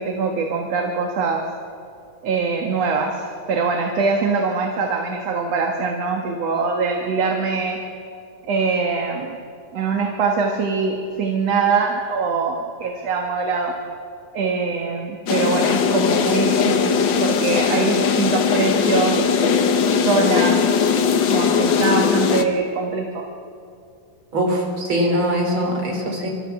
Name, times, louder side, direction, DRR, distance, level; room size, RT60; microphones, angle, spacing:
voice 1, 0.0-1.4 2.2-7.8 8.4-9.4 9.7-13.8 14.3-19.5 20.0-20.7 21.3-23.3, right 4 dB, 55° right, 2 dB, 2.4 m, -23 dB
sound 1, 15.3-22.4, left 6 dB, 90° left, 1.0 m, -19 dB
voice 2, 24.3-26.3, equal, 40° right, 0 dB, 4.4 m, -22 dB
29.0 x 14.0 x 7.4 m, 2.4 s
omnidirectional pair, 3.7 m